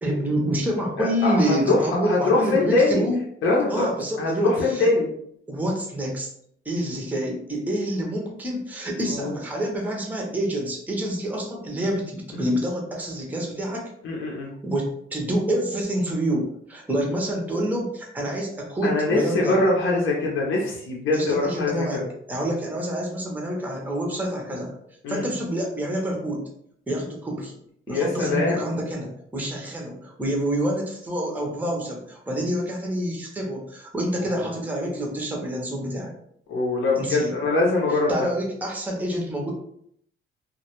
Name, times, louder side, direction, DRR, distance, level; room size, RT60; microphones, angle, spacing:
voice 1, 0.0-3.2 3.7-4.9 5.5-6.3 6.6-13.9 14.6-19.6 21.1-24.7 25.1-26.5 26.9-27.5 27.9-36.1 37.0-37.3 37.9-39.5, right 1 dB, 10° right, -1 dB, 0.6 m, -27 dB
voice 2, 1.0-1.8 2.0-3.0 3.4-3.9 4.2-5.1 9.1-9.3 14.0-14.5 18.8-22.1 25.0-25.3 27.9-28.6 36.5-38.1, left 3 dB, 75° left, -3 dB, 0.6 m, -23 dB
2.1 x 2.1 x 2.9 m, 0.68 s
cardioid pair, 120°, 21 cm